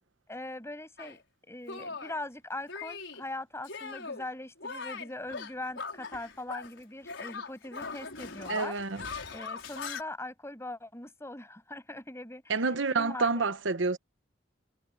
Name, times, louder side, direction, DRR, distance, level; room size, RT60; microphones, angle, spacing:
voice 1, 0.3-1.2 1.5-8.8 9.3-13.5, left 2 dB, 15° left, 7.8 m, -41 dB
Shatter, 1.0-1.2 1.7-2.2 2.7-3.2 3.6-4.3 4.6-6.8 7.0-10.0, left 4 dB, 85° left, 5.1 m, -40 dB
voice 2, 8.5-9.0 12.5-14.0, right 4 dB, 85° right, 1.0 m, -28 dB
head